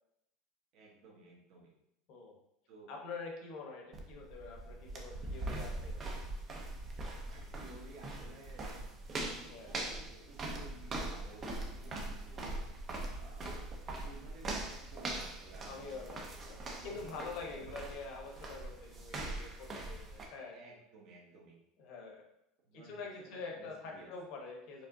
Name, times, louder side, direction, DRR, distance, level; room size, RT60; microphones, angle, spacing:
voice 1, 0.7-1.7 2.7-2.9 7.2-8.9 9.2-13.6 14.0-15.9 16.3-16.4 16.7-17.1 17.4-18.0 20.5-21.6 22.6-24.1, right 2 dB, 50° right, -2 dB, 1.2 m, -55 dB
voice 2, 2.9-6.0 9.5-9.7 15.7-20.6 21.8-22.2 22.7-24.9, left 4 dB, 55° left, 0 dB, 1.0 m, -46 dB
sound 1, 3.9-20.3, right 2 dB, 25° right, 0.6 m, -42 dB
4.8 x 3.4 x 2.7 m, 0.79 s
cardioid pair, 160°, 0 cm